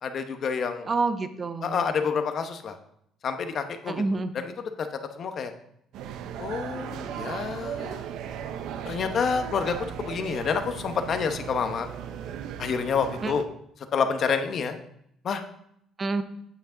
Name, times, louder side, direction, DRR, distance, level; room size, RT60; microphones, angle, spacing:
voice 1, 0.0-0.9 1.6-2.8 3.2-4.0 4.4-4.5 4.8-4.9 5.2-5.5 6.4-8.1 8.8-11.9 12.6-13.4 13.9-14.7 15.2-15.4, left 6 dB, 40° left, 7 dB, 1.0 m, -28 dB
voice 2, 0.9-1.9 3.9-4.3 13.2-13.3 16.0-16.2, right 3 dB, 25° right, 10 dB, 0.7 m, -28 dB
sound 1, 5.9-13.5, right 8 dB, 75° right, 0.7 m, -37 dB
9.1 x 8.1 x 3.9 m, 0.73 s
cardioid pair, 150°, 0 cm